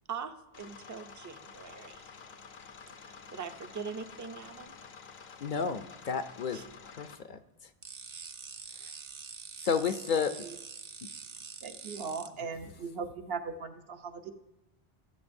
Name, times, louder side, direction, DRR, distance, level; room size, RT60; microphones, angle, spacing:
voice 1, 0.1-2.1 3.0-4.8 6.5-6.6, right 6 dB, 25° right, 9 dB, 0.4 m, -42 dB
sound 1, 0.5-7.2, left 5 dB, 80° left, 1.0 m, -50 dB
voice 2, 5.4-7.4 8.8-8.9 9.6-10.5, left 6 dB, 60° left, 9 dB, 0.6 m, -32 dB
sound 2, 7.8-12.3, right 5 dB, 50° right, 0.7 m, -45 dB
voice 3, 11.6-14.3, right 5 dB, 75° right, 7 dB, 1.0 m, -39 dB
18.0 x 7.8 x 2.6 m, 0.93 s
omnidirectional pair, 1.0 m